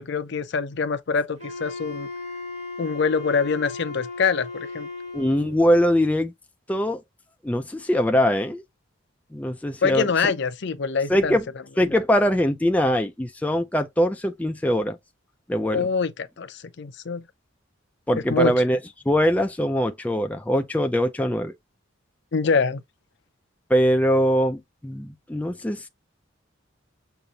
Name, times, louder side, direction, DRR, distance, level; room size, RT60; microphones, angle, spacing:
voice 1, 0.0-2.1 2.8-4.9 9.8-11.4 15.7-17.2 18.3-18.5 22.3-22.8, left 5 dB, 60° left, 0.5 m, -24 dB
Wind instrument woodwind instrument, 1.4-5.7, left 3 dB, 35° right, 1.4 m, -36 dB
voice 2, 5.1-6.3 6.7-7.0 7.4-8.6 9.3-10.1 11.1-11.5 11.8-15.0 15.5-15.9 18.1-18.8 19.1-21.5 23.7-25.9, equal, 5° left, 0.4 m, -22 dB
6.7 x 2.5 x 2.8 m
head